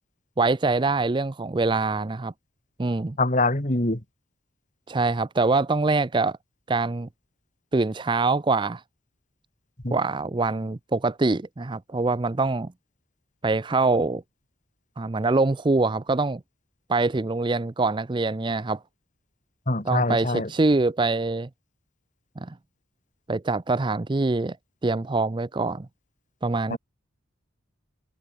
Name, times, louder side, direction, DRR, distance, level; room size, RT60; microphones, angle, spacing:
voice 1, 0.4-2.3 2.8-3.2 4.9-6.4 6.7-7.1 7.7-8.8 9.9-12.7 13.4-14.2 15.0-16.4 16.9-18.8 19.8-21.5 22.4-22.5 23.3-24.6 24.8-25.9 26.4-26.8, right 3 dB, 20° right, 0.4 m, -24 dB
voice 2, 3.2-4.0 9.8-10.0 19.7-20.5 26.7-26.8, left 2 dB, 35° left, 2.6 m, -24 dB
head